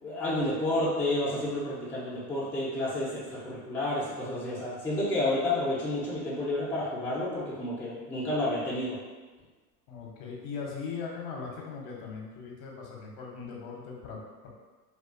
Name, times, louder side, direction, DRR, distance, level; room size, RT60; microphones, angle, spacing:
voice 1, 0.0-9.0, left 1 dB, 5° left, -7 dB, 0.5 m, -30 dB
voice 2, 9.9-14.5, left 5 dB, 45° left, -1 dB, 0.7 m, -39 dB
2.3 x 2.3 x 2.4 m, 1.3 s
hypercardioid pair, 90°, 47 cm